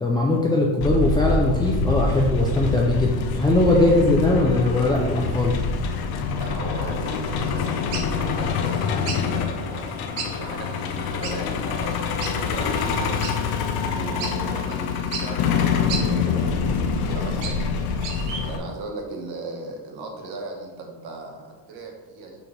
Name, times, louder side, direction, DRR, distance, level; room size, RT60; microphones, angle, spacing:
voice 1, 0.0-5.6, left 2 dB, 10° left, -2 dB, 0.3 m, -20 dB
Truck, 0.8-18.6, left 5 dB, 55° left, 0.7 m, -25 dB
voice 2, 6.3-7.8 8.1-9.9 10.3-17.9 18.4-22.4, right 3 dB, 55° right, 1 dB, 1.4 m, -37 dB
sound 1, 7.9-8.1 9.1-9.2 10.2-10.3 10.6-10.7 11.2-11.4 12.2-12.3 13.2-13.3 13.8-13.9 14.2-14.3 15.1-15.3 15.9-16.0 17.0-17.7 18.0-18.4, right 5 dB, 75° right, 1.1 m, -31 dB
5.3 x 4.1 x 4.4 m, 1.3 s
cardioid pair, 140°, 46 cm